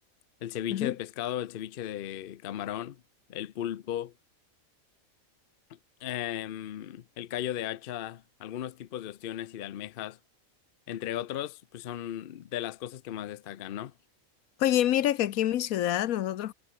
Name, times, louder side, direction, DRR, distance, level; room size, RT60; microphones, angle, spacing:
voice 1, 0.4-3.0 3.3-4.1 5.7-10.2 10.9-13.9, left 11 dB, 55° left, 0.6 m, -36 dB
voice 2, 14.6-16.5, left 12 dB, 75° left, 1.1 m, -26 dB
omnidirectional pair, 1.5 m